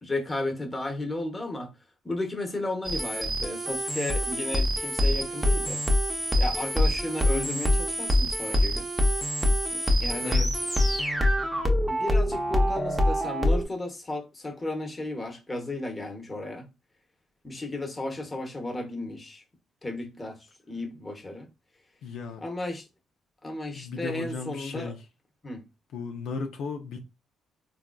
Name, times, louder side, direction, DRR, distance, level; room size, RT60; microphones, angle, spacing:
voice 1, 0.0-1.7 2.0-5.8 6.4-8.9 9.7-10.5 11.9-16.7 17.4-19.4 19.8-21.5 22.4-22.9 23.4-24.9 25.4-25.6, left 2 dB, 20° left, 1.0 m, -34 dB
sound 1, 2.8-13.6, left 1 dB, 10° right, 0.8 m, -25 dB
voice 2, 10.1-10.6 22.0-22.4 23.8-25.0 25.9-27.0, left 4 dB, 80° left, 0.6 m, -36 dB
3.5 x 2.4 x 2.3 m
cardioid pair, 90°, 0 cm